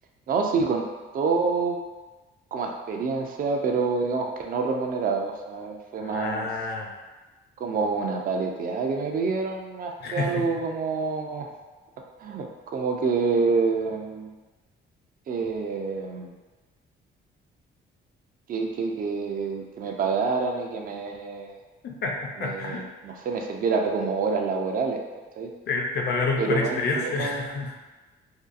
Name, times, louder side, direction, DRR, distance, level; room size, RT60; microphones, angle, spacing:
voice 1, 0.3-0.8 1.1-1.8 2.5-6.5 7.6-11.5 12.2-12.5 12.7-14.3 15.3-16.3 18.5-21.6 22.4-25.0 25.4-25.5 26.4-27.5, right 4 dB, 45° right, 2 dB, 0.4 m, -27 dB
voice 2, 6.0-7.0 10.0-10.5 21.8-22.8 25.7-27.7, left 3 dB, 55° left, 0 dB, 0.5 m, -28 dB
2.7 x 2.2 x 2.4 m, 1.2 s
cardioid pair, 90°, 20 cm